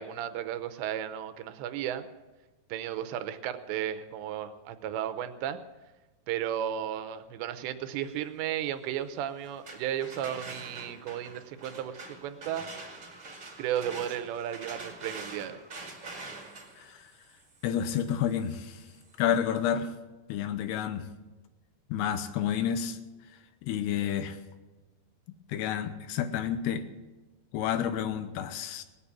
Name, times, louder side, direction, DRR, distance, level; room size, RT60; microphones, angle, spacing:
voice 1, 0.0-2.1 2.7-5.6 6.3-12.7 13.6-15.6, right 10 dB, 85° right, 10 dB, 3.1 m, -34 dB
sound 1, 9.4-19.2, right 3 dB, 30° right, 1.5 m, -45 dB
voice 2, 17.6-18.8 19.2-19.9 20.3-21.1 21.9-23.0 23.6-24.4 25.5-26.8 27.5-28.8, left 9 dB, 80° left, 10 dB, 2.7 m, -30 dB
19.0 x 8.4 x 7.4 m, 1.2 s
omnidirectional pair, 4.9 m